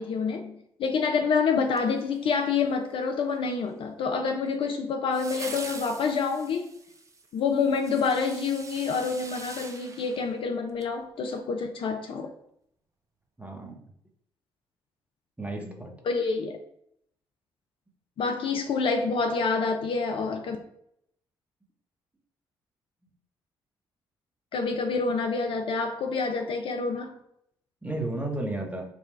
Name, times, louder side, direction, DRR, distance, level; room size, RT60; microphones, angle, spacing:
voice 1, 0.0-6.7 7.3-12.3 16.1-16.6 18.2-20.6 24.5-27.1, left 5 dB, 45° left, 0.5 m, -27 dB
sound 1, 1.7-2.6 5.1-10.9 11.3-11.4, right 3 dB, 25° right, 0.6 m, -43 dB
voice 2, 13.4-13.8 15.4-15.9 27.8-28.9, right 2 dB, 10° right, 1.0 m, -33 dB
4.3 x 2.3 x 3.1 m
figure-of-eight pair, 40°, 12 cm